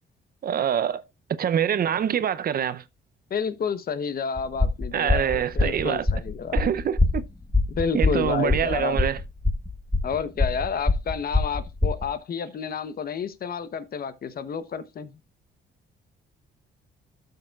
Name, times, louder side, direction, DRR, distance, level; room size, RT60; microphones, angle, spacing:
voice 1, 0.4-1.0 1.4-2.8 4.9-6.0 6.5-7.2 7.9-9.2, right 9 dB, 50° right, 0.6 m, -25 dB
voice 2, 3.3-6.6 7.8-9.0 10.0-15.2, left 6 dB, 50° left, 0.9 m, -30 dB
sound 1, 4.4-12.1, left 2 dB, 5° left, 1.2 m, -23 dB
12.5 x 6.6 x 2.3 m
cardioid pair, 90°, 20 cm